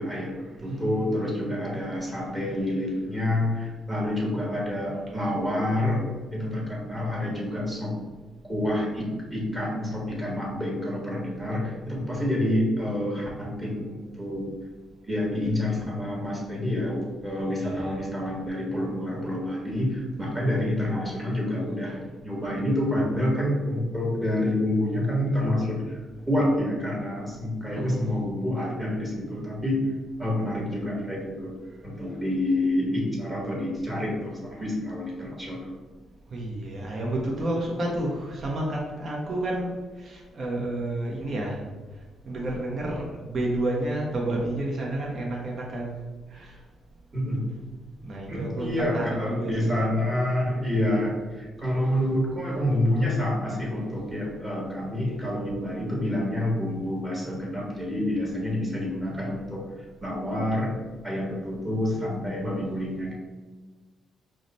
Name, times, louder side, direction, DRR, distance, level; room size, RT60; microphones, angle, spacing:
voice 1, 0.0-6.0 6.3-8.0 8.4-14.5 15.0-26.0 26.3-29.9 30.2-31.5 31.8-35.7 47.1-47.4 48.3-59.6 60.0-60.8 61.0-63.1, left 1 dB, 15° right, -3 dB, 1.3 m, -28 dB
voice 2, 0.6-1.2 17.5-17.9 21.8-21.9 27.7-28.0 36.3-41.6 42.2-46.0 46.3-46.6 48.0-49.8, right 1 dB, 45° right, -3 dB, 0.8 m, -30 dB
4.8 x 2.1 x 4.0 m, 1.3 s
cardioid pair, 90°, 0 cm